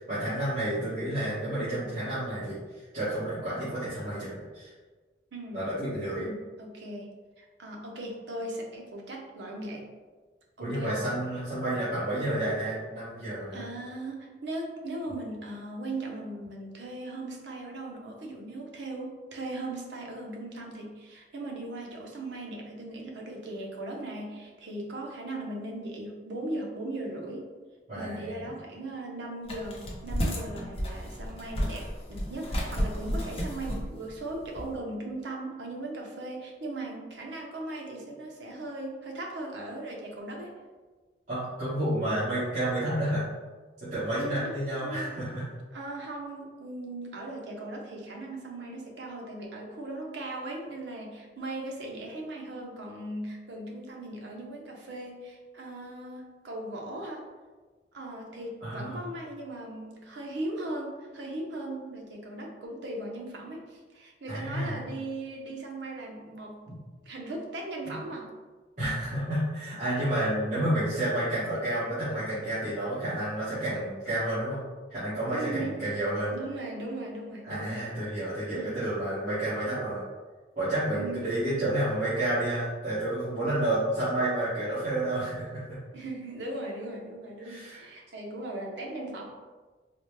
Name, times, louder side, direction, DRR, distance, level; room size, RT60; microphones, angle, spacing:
voice 1, 0.0-2.6 2.9-4.7 5.5-6.3 10.6-13.6 27.9-28.4 41.3-43.2 43.8-45.4 58.6-59.0 64.3-64.8 67.8-67.9 68.8-74.6 74.9-76.3 77.4-80.0 80.5-85.6 87.4-87.9, right 1 dB, 40° right, -15 dB, 1.3 m, -30 dB
voice 2, 5.3-5.6 6.2-7.1 7.4-9.9 10.6-11.1 13.5-27.5 28.0-40.5 44.2-45.1 45.7-57.3 57.9-66.6 67.1-68.3 75.3-75.8 76.3-77.8 78.5-78.8 80.9-81.2 85.9-89.2, right 1 dB, 80° right, -1 dB, 0.7 m, -38 dB
sound 1, 29.4-34.7, equal, 35° left, 0.6 m, -32 dB
4.1 x 2.1 x 3.1 m, 1.3 s
head